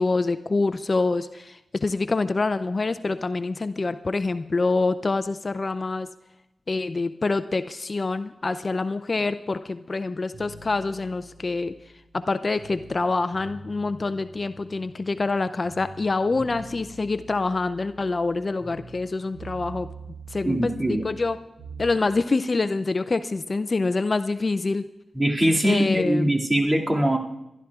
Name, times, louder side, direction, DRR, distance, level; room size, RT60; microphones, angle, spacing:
voice 1, 0.0-6.1 6.7-11.7 12.1-19.9 20.3-21.4 21.8-24.9 25.6-26.3, left 3 dB, 45° left, 13 dB, 0.4 m, -26 dB
sound 1, 10.3-13.0 13.3-15.4 15.6-19.1 19.3-22.0, right 3 dB, 80° right, 6.4 m, -44 dB
voice 2, 20.4-21.0 25.1-27.2, right 1 dB, 25° right, -1 dB, 2.2 m, -22 dB
26.0 x 12.0 x 2.4 m, 0.90 s
cardioid pair, 45°, 0 cm